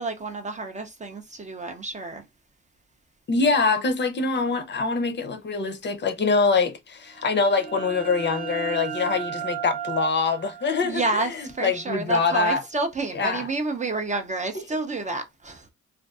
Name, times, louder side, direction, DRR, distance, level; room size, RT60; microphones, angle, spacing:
voice 1, 0.0-2.2 10.8-15.7, right 3 dB, 25° right, 0.4 m, -29 dB
voice 2, 3.3-11.0 11.4-12.6 13.2-13.5, left 4 dB, 35° left, 0.5 m, -24 dB
sound 1, 7.1-12.6, right 9 dB, 65° right, 0.7 m, -36 dB
2.5 x 2.3 x 2.3 m
cardioid pair, 90°, 30 cm